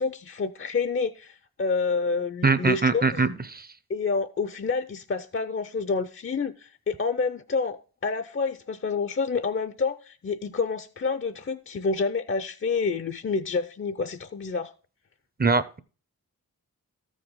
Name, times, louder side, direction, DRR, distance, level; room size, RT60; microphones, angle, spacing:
voice 1, 0.0-3.2 3.9-14.7, left 4 dB, 35° left, 0.5 m, -28 dB
voice 2, 2.4-3.7 15.4-15.8, right 4 dB, 25° right, 0.6 m, -23 dB
13.5 x 4.9 x 3.7 m
wide cardioid pair, 65°, 36 cm